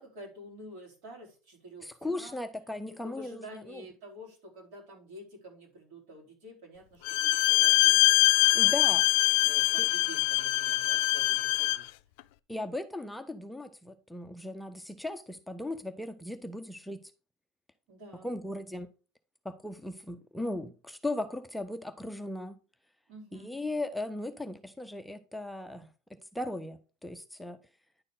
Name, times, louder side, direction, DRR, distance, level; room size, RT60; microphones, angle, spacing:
voice 1, 0.0-2.4 2.9-9.0 9.4-11.9 17.9-18.3 23.1-23.5, equal, 70° right, 3.7 m, -49 dB
voice 2, 1.8-3.8 8.5-9.0 9.8-9.9 12.5-17.0 18.2-18.9 19.4-22.6 23.3-25.9 26.3-27.6, left 2 dB, ahead, 0.4 m, -37 dB
Bowed string instrument, 7.0-11.9, left 20 dB, 75° left, 0.3 m, -24 dB
9.8 x 4.3 x 3.7 m
cardioid pair, 165°, 0 cm